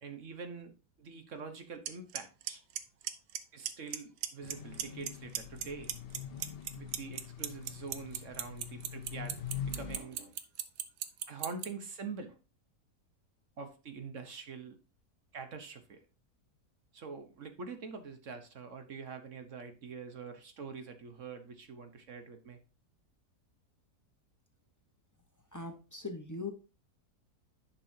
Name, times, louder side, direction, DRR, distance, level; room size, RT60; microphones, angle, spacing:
voice 1, 0.0-0.7 1.0-2.6 3.5-5.9 6.8-10.4 11.3-12.4 13.6-14.8 15.3-16.0 16.9-22.6, right 5 dB, 55° right, 7 dB, 1.3 m, -45 dB
Clock, 1.9-2.0 2.2-2.5 2.8-3.4 3.7-4.0 4.2-5.1 5.4-11.7, right 11 dB, 85° right, 1.3 m, -34 dB
sound 1, 4.4-10.0, left 8 dB, 65° left, 0.6 m, -44 dB
voice 2, 25.5-26.5, left 3 dB, 15° left, 4 dB, 0.8 m, -40 dB
10.5 x 5.7 x 2.7 m, 0.31 s
omnidirectional pair, 1.7 m